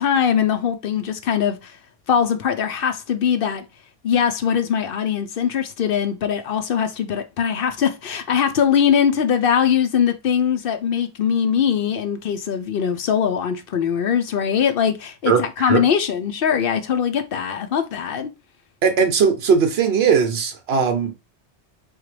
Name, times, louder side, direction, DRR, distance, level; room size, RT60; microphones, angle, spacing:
voice 1, 0.0-1.8 2.1-3.6 4.0-18.3, left 8 dB, 60° left, 0.7 m, -21 dB
voice 2, 15.3-15.8 18.8-21.1, right 6 dB, 65° right, 1.0 m, -19 dB
3.9 x 3.6 x 3.2 m
omnidirectional pair, 1.1 m